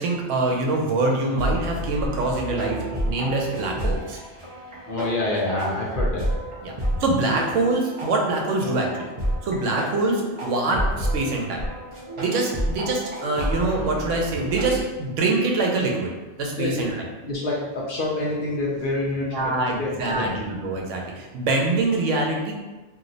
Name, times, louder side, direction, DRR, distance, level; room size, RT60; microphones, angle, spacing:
voice 1, 0.0-2.8 3.1-4.2 6.6-6.7 7.0-8.9 9.4-11.7 12.2-16.1 16.4-16.9 19.3-22.5, right 2 dB, 85° right, 0 dB, 1.0 m, -24 dB
sound 1, 1.3-14.8, equal, 45° right, 0.4 m, -30 dB
voice 2, 4.9-6.3 16.6-16.9 17.2-20.3, left 2 dB, 60° left, -4 dB, 0.6 m, -27 dB
2.8 x 2.0 x 3.8 m, 1.2 s
omnidirectional pair, 1.2 m